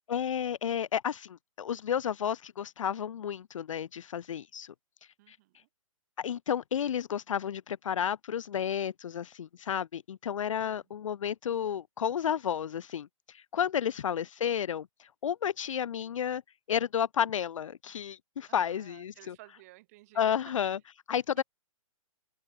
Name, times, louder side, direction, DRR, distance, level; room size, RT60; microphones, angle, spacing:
voice 1, 0.1-4.7 5.3-5.4 6.2-13.1 13.3-16.4 16.7-19.4 20.2-20.8 21.1-21.4, left 8 dB, 65° left, 0.6 m, -32 dB
voice 2, 5.2-5.7 18.5-20.4 21.4-21.5, right 20 dB, 25° right, 2.2 m, -55 dB
open air
hypercardioid pair, 170°, 18 cm